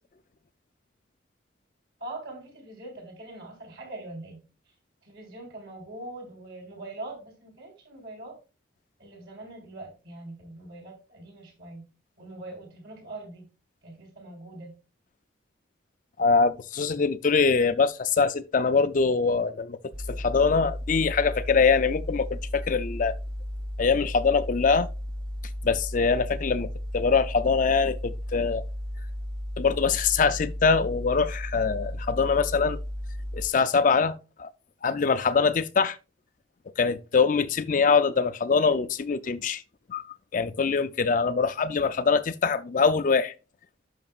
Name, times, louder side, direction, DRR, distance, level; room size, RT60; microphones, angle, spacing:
voice 1, 2.0-4.4 5.0-8.4 9.0-11.9 12.2-13.4 13.8-14.7, right 2 dB, 55° right, 3.9 m, -42 dB
voice 2, 16.2-19.8 20.1-23.1 23.8-24.9 25.6-26.7 26.9-28.6 29.6-32.8 33.3-34.5 34.8-36.0 36.8-39.6 39.9-40.0 40.3-43.3, left 5 dB, 40° left, 0.4 m, -23 dB
sound 1, 19.9-33.5, equal, 25° right, 1.1 m, -34 dB
11.0 x 6.1 x 2.4 m
head